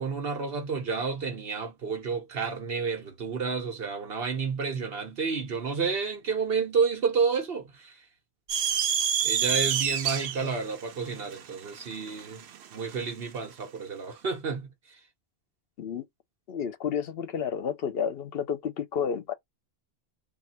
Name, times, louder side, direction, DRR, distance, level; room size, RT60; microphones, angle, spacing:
voice 1, 0.0-8.0 9.2-14.7, right 5 dB, 70° right, 1.2 m, -30 dB
sound 1, 8.5-13.0, right 8 dB, 85° right, 0.8 m, -28 dB
voice 2, 16.5-19.3, left 7 dB, 70° left, 0.8 m, -31 dB
2.7 x 2.4 x 4.2 m
omnidirectional pair, 1.1 m